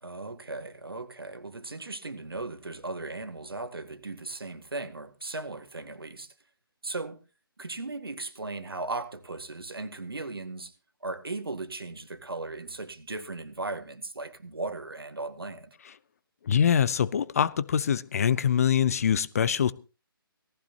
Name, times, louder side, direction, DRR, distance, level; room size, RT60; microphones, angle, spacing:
voice 1, 0.0-6.3 6.8-7.2 7.6-10.7 11.0-15.7, right 3 dB, 70° right, 1.9 m, -37 dB
voice 2, 16.5-19.7, left 8 dB, 40° left, 0.6 m, -24 dB
18.5 x 14.5 x 2.9 m
figure-of-eight pair, 145°, 13 cm